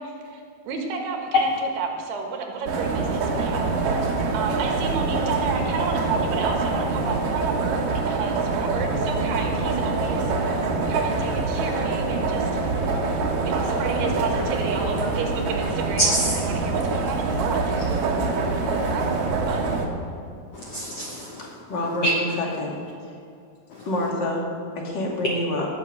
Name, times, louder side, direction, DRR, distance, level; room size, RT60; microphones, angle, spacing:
voice 1, 0.0-1.5 1.8-3.7 4.3-10.5 10.9-12.7 13.4-16.1 16.5-17.6 18.9-19.8, right 4 dB, 85° right, 3 dB, 3.5 m, -31 dB
sound 1, 2.7-19.9, right 3 dB, 65° right, 2.7 m, -25 dB
voice 2, 16.0-16.4 18.7-19.1 20.5-22.4 23.7-23.9, equal, 75° left, 0 dB, 1.4 m, -26 dB
voice 3, 21.7-22.8 23.9-24.5 24.8-25.7, left 1 dB, 35° left, -1 dB, 2.0 m, -27 dB
18.0 x 7.6 x 6.3 m, 2.5 s
omnidirectional pair, 4.5 m